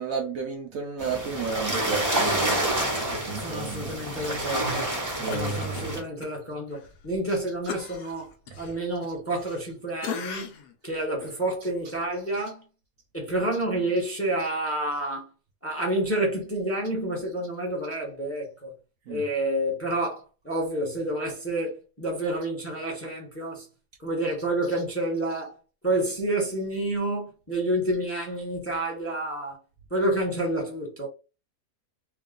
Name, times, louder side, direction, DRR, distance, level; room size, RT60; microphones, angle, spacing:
voice 1, 0.0-4.0 5.2-5.9 19.1-19.2, right 5 dB, 65° right, 1.0 m, -33 dB
sound 1, 1.0-6.0, right 1 dB, 15° right, 0.8 m, -28 dB
voice 2, 3.3-4.9 5.3-8.3 8.6-10.5 10.8-12.6 13.1-15.3 15.6-18.7 19.1-23.7 24.0-25.5 25.8-29.6 29.9-31.1, right 1 dB, 10° left, 0.9 m, -29 dB
Cough, 5.3-6.3 6.7-6.9 7.7-9.7 10.0-10.7 11.2-11.4, left 7 dB, 80° left, 1.3 m, -38 dB
3.5 x 2.3 x 3.7 m
omnidirectional pair, 1.7 m